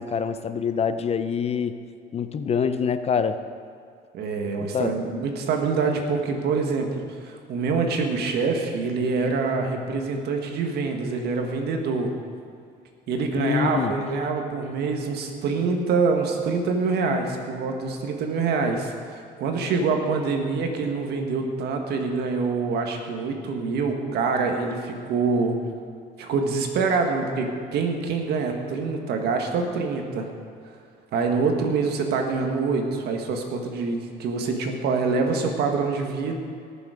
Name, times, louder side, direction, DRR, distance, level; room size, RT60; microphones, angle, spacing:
voice 1, 0.0-1.8 2.1-3.4 4.6-5.0 13.4-13.9, left 6 dB, 40° left, 11 dB, 0.6 m, -25 dB
voice 2, 4.1-12.1 13.1-25.5 26.2-30.3 31.1-36.4, right 4 dB, 75° right, 4 dB, 1.8 m, -25 dB
18.5 x 7.1 x 5.2 m, 2.4 s
cardioid pair, 110°, 17 cm